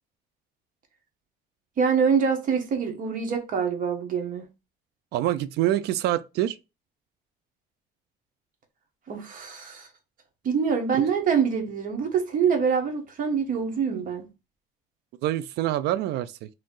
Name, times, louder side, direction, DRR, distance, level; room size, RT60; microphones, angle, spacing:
voice 1, 1.8-4.4 9.1-9.9 10.4-14.3, right 6 dB, 55° right, 1.1 m, -25 dB
voice 2, 5.1-6.6 10.9-11.0 15.2-16.5, right 13 dB, 80° right, 0.4 m, -26 dB
3.1 x 2.7 x 3.8 m
cardioid pair, 110°, 17 cm